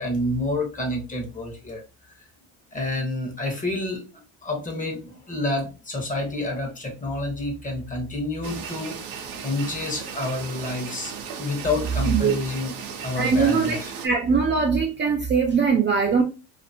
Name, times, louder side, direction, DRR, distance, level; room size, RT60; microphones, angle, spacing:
voice 1, 0.0-1.8 2.7-9.0 9.4-11.1 11.4-12.7 13.0-13.9, left 2 dB, 20° left, 0.9 m, -29 dB
sound 1, 8.4-14.1, right 6 dB, 65° right, 0.7 m, -36 dB
voice 2, 12.1-12.4 13.2-16.2, right 5 dB, 30° right, 0.5 m, -21 dB
2.5 x 2.5 x 2.6 m
cardioid pair, 105°, 36 cm